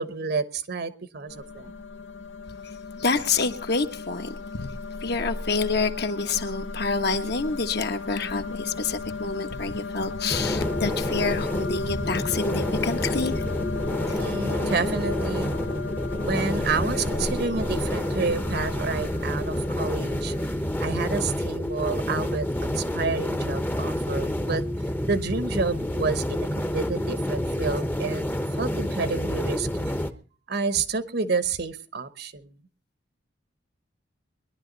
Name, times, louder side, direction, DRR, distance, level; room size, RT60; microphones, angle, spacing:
voice 1, 0.0-1.7 14.1-15.5 16.2-20.3 20.8-24.6 25.1-28.3 28.6-29.9 30.5-32.5, right 4 dB, 60° right, 1.2 m, -29 dB
sound 1, 1.3-20.5, left 4 dB, 85° left, 0.9 m, -35 dB
voice 2, 3.0-4.7 5.0-13.4 14.1-14.2, left 4 dB, 60° left, 1.4 m, -28 dB
sound 2, 10.3-30.1, equal, 10° left, 0.9 m, -28 dB
21.5 x 11.5 x 4.0 m
head